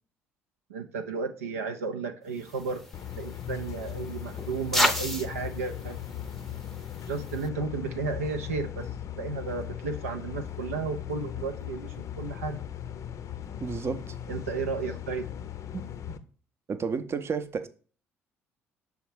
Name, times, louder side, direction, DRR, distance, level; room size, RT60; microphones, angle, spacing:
voice 1, 0.7-2.8 3.2-6.0 7.1-8.9 9.2-12.6 14.3-15.3, right 4 dB, 80° right, 0.4 m, -33 dB
sound 1, 2.4-7.5, left 1 dB, 5° left, 0.7 m, -33 dB
sound 2, 2.9-16.2, left 10 dB, 45° left, 0.5 m, -38 dB
voice 2, 13.6-14.2 16.1-16.2 16.7-17.7, right 5 dB, 35° right, 0.6 m, -32 dB
6.3 x 3.5 x 4.5 m
figure-of-eight pair, 50°, 7 cm